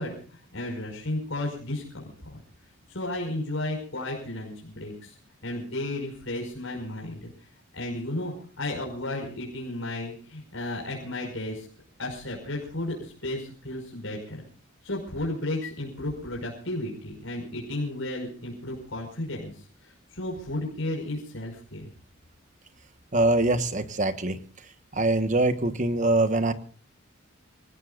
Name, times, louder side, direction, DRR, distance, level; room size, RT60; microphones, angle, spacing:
voice 1, 0.0-2.4 2.9-5.2 5.4-7.3 7.7-11.7 12.0-14.5 14.8-21.9, left 1 dB, 65° left, -1 dB, 5.6 m, -33 dB
voice 2, 23.1-24.4 24.9-26.5, right 2 dB, 35° right, 11 dB, 1.3 m, -23 dB
28.0 x 18.0 x 2.5 m, 0.41 s
head